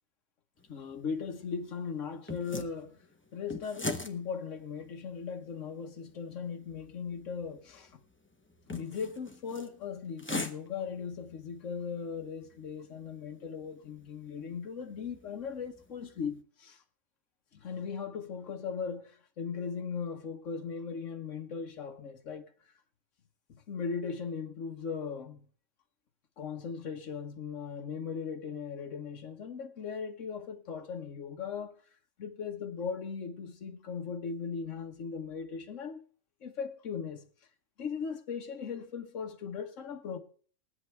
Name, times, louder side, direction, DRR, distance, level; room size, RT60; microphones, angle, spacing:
sound 1, 0.6-16.4, left 2 dB, 10° left, 0.7 m, -45 dB
voice 1, 0.7-3.0 3.3-8.0 8.7-16.8 17.5-22.5 23.5-25.4 26.4-31.8 32.2-36.0 36.4-37.3 37.8-40.2, left 6 dB, 60° left, 1.6 m, -38 dB
20.5 x 8.2 x 3.3 m
omnidirectional pair, 1.5 m